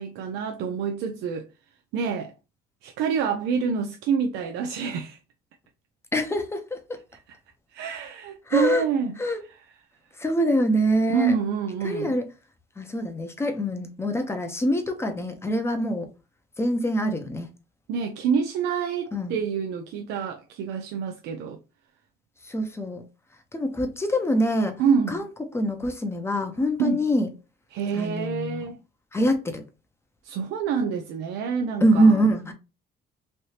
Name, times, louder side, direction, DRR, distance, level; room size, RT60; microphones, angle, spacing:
voice 1, 0.0-1.5 1.9-2.3 2.8-5.2 7.7-9.2 11.1-12.1 17.9-21.6 24.8-25.2 26.8-27.0 27.7-28.8 30.2-32.2, right 6 dB, 85° right, 0.4 m, -27 dB
voice 2, 6.1-6.8 8.5-8.8 9.2-9.4 10.2-11.4 11.8-12.3 12.8-16.1 16.6-17.5 19.1-19.3 22.4-23.0 23.5-24.8 25.1-27.3 27.9-28.7 29.1-29.6 31.8-32.5, equal, 15° left, 0.7 m, -24 dB
3.2 x 2.7 x 2.8 m
cardioid pair, 110°, 17 cm